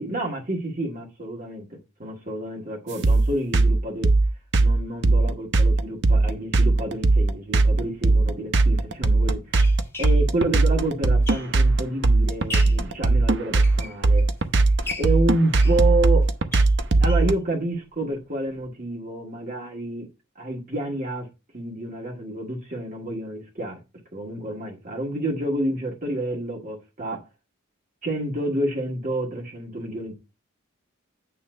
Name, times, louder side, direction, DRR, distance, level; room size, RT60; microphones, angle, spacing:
voice 1, 0.0-4.1 4.6-9.4 10.0-14.2 15.0-16.3 17.0-20.1 20.4-21.3 21.5-23.8 24.1-27.2 28.0-30.1, right 1 dB, 40° right, 2.0 m, -29 dB
sound 1, 3.0-17.3, right 2 dB, 55° right, 0.8 m, -18 dB
sound 2, 7.9-8.1 8.9-11.8 12.2-12.9 13.4-14.4 14.8-17.4 17.7-17.8 18.1-18.2 18.6-18.7, left 3 dB, 10° left, 1.4 m, -39 dB
8.7 x 3.3 x 6.5 m
head